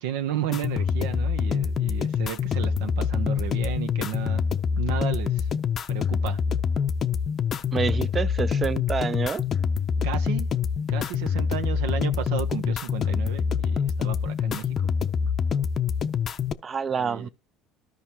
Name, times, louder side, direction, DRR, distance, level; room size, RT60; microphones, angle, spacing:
voice 1, 0.0-4.4 4.8-5.5 5.9-6.4 10.0-10.5 10.9-14.7 16.9-17.3, right 10 dB, 85° right, 0.9 m, -33 dB
sound 1, 0.5-16.5, left 6 dB, 40° left, 0.6 m, -26 dB
voice 2, 7.7-9.4 16.6-17.3, right 6 dB, 30° right, 0.5 m, -27 dB
13.5 x 4.9 x 2.9 m
supercardioid pair, 105°, 0 cm